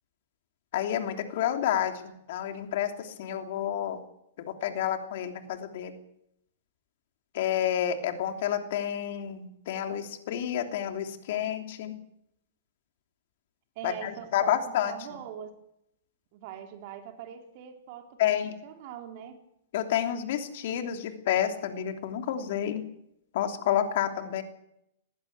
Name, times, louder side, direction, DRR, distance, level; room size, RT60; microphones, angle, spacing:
voice 1, 0.7-4.0 4.4-5.9 7.3-12.0 13.8-14.9 18.2-18.5 19.7-22.8 23.3-24.4, left 10 dB, 60° left, 6 dB, 3.1 m, -29 dB
voice 2, 13.8-15.5 16.3-18.3 18.6-19.4, right 9 dB, 50° right, 4 dB, 4.0 m, -42 dB
20.0 x 16.0 x 8.2 m, 0.78 s
hypercardioid pair, 115°, 0 cm